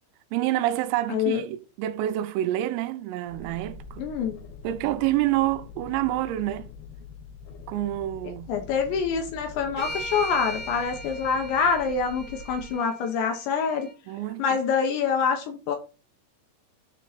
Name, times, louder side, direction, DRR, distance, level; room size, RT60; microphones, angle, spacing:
voice 1, 0.3-4.0 4.6-6.7 7.7-8.5 14.1-14.4, right 14 dB, 85° right, 3.4 m, -27 dB
voice 2, 1.1-1.4 4.0-4.4 8.2-13.9 14.4-15.8, left 6 dB, 75° left, 2.8 m, -26 dB
sound 1, 3.3-12.7, left 5 dB, 90° left, 4.2 m, -44 dB
sound 2, 9.8-13.9, equal, 45° left, 1.1 m, -39 dB
9.4 x 3.7 x 4.1 m
omnidirectional pair, 6.0 m